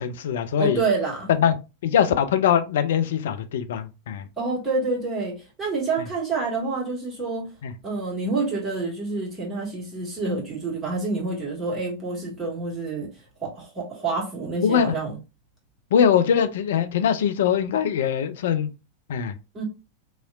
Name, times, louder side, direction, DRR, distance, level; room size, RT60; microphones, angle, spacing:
voice 1, 0.0-0.8 1.3-1.6 1.8-4.3 7.6-7.7 14.6-15.0 15.9-18.7 19.1-19.3, left 8 dB, 60° left, 0.4 m, -22 dB
voice 2, 0.6-1.3 4.4-7.5 7.8-13.1 13.4-15.2 19.5-19.6, right 3 dB, 10° right, 1.6 m, -28 dB
3.0 x 2.8 x 2.3 m
figure-of-eight pair, 90°, 0 cm